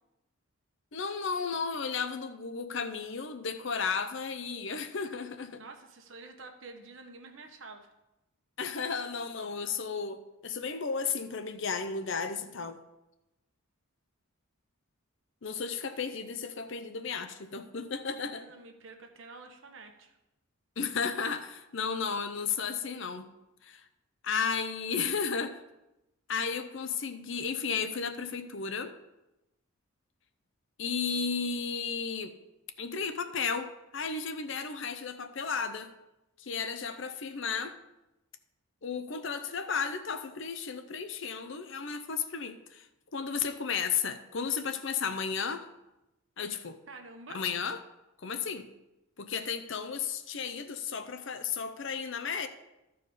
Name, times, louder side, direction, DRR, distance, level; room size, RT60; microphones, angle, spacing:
voice 1, 0.9-5.6 8.6-12.8 15.4-18.4 20.8-23.3 23.6-23.8 24.2-25.6 26.3-28.9 30.8-32.3 32.8-35.9 36.4-37.7 38.8-42.9 43.1-45.6 46.4-46.8 47.3-47.8 48.2-48.7 49.2-52.5, left 5 dB, 60° left, 9 dB, 0.6 m, -34 dB
voice 2, 5.6-7.9 18.1-20.2 46.9-47.4, right 3 dB, 65° right, 4 dB, 1.1 m, -49 dB
13.5 x 4.7 x 4.8 m, 0.95 s
head